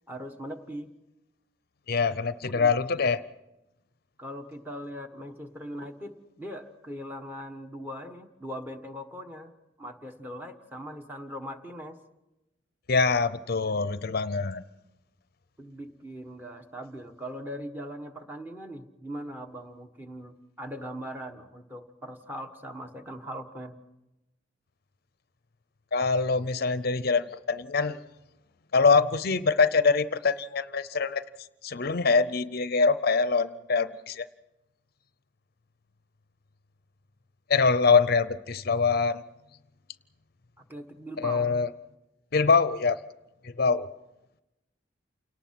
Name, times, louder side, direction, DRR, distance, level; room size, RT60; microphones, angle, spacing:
voice 1, 0.1-0.9 2.5-2.7 4.2-12.0 15.6-23.7 40.6-41.5, equal, 10° right, 5 dB, 1.6 m, -40 dB
voice 2, 1.9-3.2 12.9-14.6 25.9-28.0 28.7-31.2 31.6-34.2 37.5-39.2 41.2-41.7 42.3-43.0 43.4-43.9, left 4 dB, 55° left, 14 dB, 0.7 m, -24 dB
28.5 x 18.5 x 6.0 m, 0.98 s
head